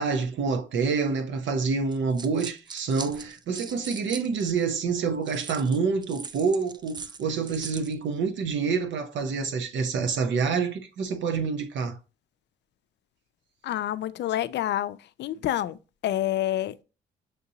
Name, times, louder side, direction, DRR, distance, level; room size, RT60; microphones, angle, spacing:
voice 1, 0.0-12.0, right 5 dB, 70° right, 0.8 m, -27 dB
sound 1, 1.9-4.7 5.2-7.9, right 5 dB, 20° right, 0.3 m, -41 dB
voice 2, 13.6-16.7, left 13 dB, 60° left, 0.4 m, -28 dB
6.6 x 2.8 x 2.7 m
cardioid pair, 90°, 20 cm